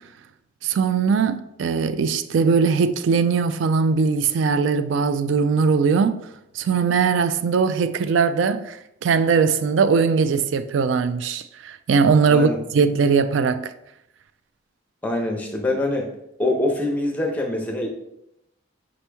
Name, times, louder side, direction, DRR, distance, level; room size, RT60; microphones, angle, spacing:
voice 1, 0.6-6.2 6.6-8.8 9.0-13.7, right 5 dB, 65° right, 0.3 m, -20 dB
voice 2, 15.0-16.1 16.4-17.9, left 2 dB, 10° left, 0.7 m, -24 dB
5.1 x 2.9 x 3.4 m
head